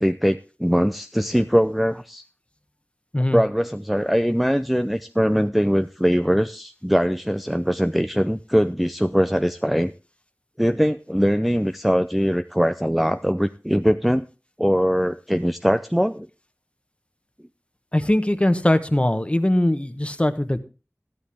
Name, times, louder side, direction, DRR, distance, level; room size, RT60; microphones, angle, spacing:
voice 1, 0.0-2.2 3.3-9.9 10.6-14.3 14.6-16.3, equal, ahead, 9 dB, 0.5 m, -21 dB
voice 2, 17.9-20.6, left 1 dB, 25° left, 10 dB, 1.2 m, -21 dB
13.5 x 11.5 x 3.5 m, 0.31 s
wide cardioid pair, 45°, 5 cm